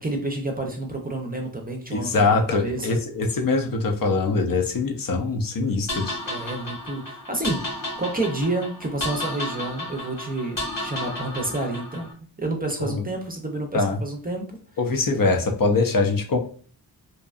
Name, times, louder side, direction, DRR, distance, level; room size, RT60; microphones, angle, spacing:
voice 1, 0.0-3.0 6.3-12.1 12.4-14.5, right 2 dB, 20° right, 2 dB, 0.5 m, -29 dB
voice 2, 1.9-6.2 12.8-13.0 13.7-14.0 14.8-16.4, left 3 dB, 55° left, 4 dB, 0.5 m, -23 dB
sound 1, 5.9-12.1, left 1 dB, 85° left, 1.3 m, -33 dB
2.6 x 2.2 x 2.4 m, 0.42 s
wide cardioid pair, 75°, 42 cm